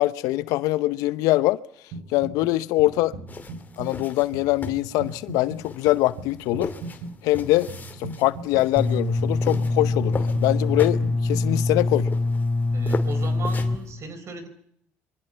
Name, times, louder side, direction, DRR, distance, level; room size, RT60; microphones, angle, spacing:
voice 1, 0.0-1.6 2.1-3.1 3.8-6.7 7.2-7.7 8.0-12.1, left 17 dB, 80° left, 0.9 m, -23 dB
sound 1, 1.9-2.5 2.8-11.6, right 3 dB, 80° right, 7.3 m, -39 dB
sound 2, 3.3-13.9, left 4 dB, 30° left, 2.8 m, -38 dB
sound 3, 8.8-13.8, left 2 dB, 10° left, 7.3 m, -24 dB
voice 2, 12.7-14.5, right 4 dB, 50° right, 5.1 m, -35 dB
27.0 x 24.0 x 5.8 m
supercardioid pair, 75°, 6 cm